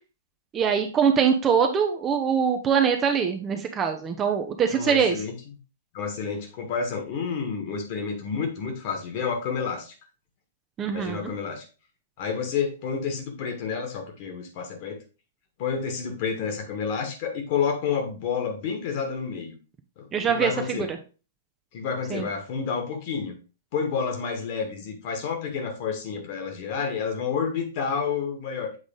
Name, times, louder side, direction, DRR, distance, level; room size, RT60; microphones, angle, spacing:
voice 1, 0.5-5.1 10.8-11.2 20.1-21.0 22.1-22.3, right 7 dB, 20° right, 5 dB, 0.7 m, -23 dB
voice 2, 4.7-5.3 5.9-9.9 10.9-11.6 12.2-15.0 15.6-19.5 20.0-20.9 21.7-23.3 23.7-28.7, left 6 dB, 40° left, 4 dB, 1.8 m, -29 dB
8.0 x 3.7 x 3.8 m, 0.35 s
figure-of-eight pair, 110°, 0 cm